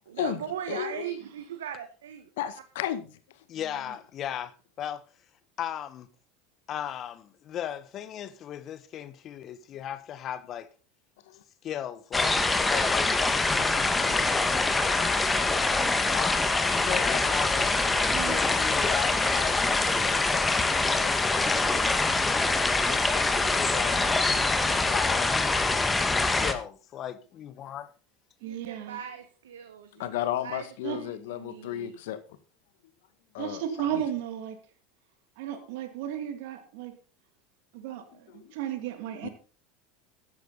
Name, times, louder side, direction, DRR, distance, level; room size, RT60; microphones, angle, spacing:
voice 1, 0.1-2.3 28.4-30.1 30.4-32.0 33.9-34.1, right 9 dB, 85° right, 1.4 m, -39 dB
voice 2, 0.7-1.0 2.4-3.1 11.3-11.4 30.0-32.2 33.3-33.6 37.9-38.0 38.3-38.4 39.2-39.3, left 12 dB, 75° left, 1.8 m, -33 dB
voice 3, 3.5-5.0 5.6-6.1 6.7-10.7 11.6-15.5 16.1-16.4 16.8-22.4 22.9-25.5 26.2-27.9, left 10 dB, 45° left, 1.3 m, -37 dB
sound 1, 12.1-26.5, left 3 dB, 15° left, 1.9 m, -24 dB
voice 4, 28.4-29.0 30.8-31.0 33.4-34.6 35.4-36.9 37.7-39.3, right 10 dB, 70° right, 2.4 m, -34 dB
14.5 x 10.5 x 4.1 m
hypercardioid pair, 90°, 0 cm